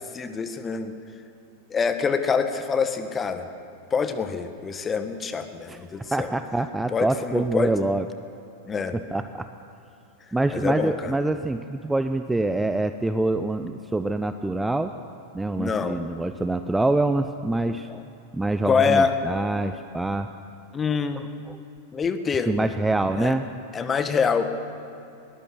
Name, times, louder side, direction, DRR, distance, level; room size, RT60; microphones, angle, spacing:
voice 1, 0.1-0.9 1.7-3.5 3.9-6.3 6.9-7.7 8.7-9.0 10.5-11.2 15.6-16.0 17.9-18.0 18.6-19.1 20.7-21.2 21.9-22.7 23.2-23.3 23.7-24.6, left 5 dB, 20° left, 9 dB, 1.4 m, -25 dB
voice 2, 6.1-8.1 9.1-9.5 10.3-14.9 15.3-17.9 18.3-20.3 21.2-21.6 22.5-23.4, right 2 dB, 5° right, 9 dB, 0.6 m, -25 dB
20.5 x 19.5 x 6.5 m, 2.8 s
figure-of-eight pair, 90°, 0 cm